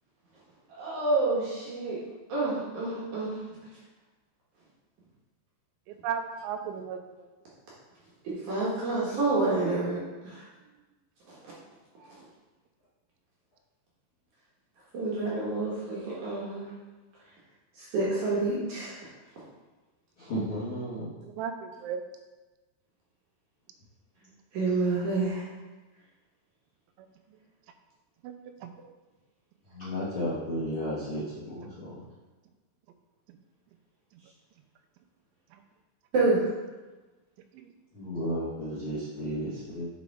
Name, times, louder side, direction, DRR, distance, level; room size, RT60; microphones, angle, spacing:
voice 1, 0.7-2.0 2.3-3.4 8.2-10.4 11.3-11.4 14.9-16.7 17.8-19.1 19.4-19.5 24.5-25.5 36.1-36.4, right 3 dB, 65° right, -6 dB, 2.0 m, -28 dB
voice 2, 5.9-7.3 21.2-22.0 28.2-28.7 35.5-35.6 37.5-37.7, right 7 dB, 90° right, 7 dB, 3.0 m, -36 dB
voice 3, 20.2-21.1 29.7-32.0 37.9-39.9, equal, 80° left, -11 dB, 1.2 m, -33 dB
7.9 x 4.9 x 3.5 m, 1.2 s
omnidirectional pair, 5.3 m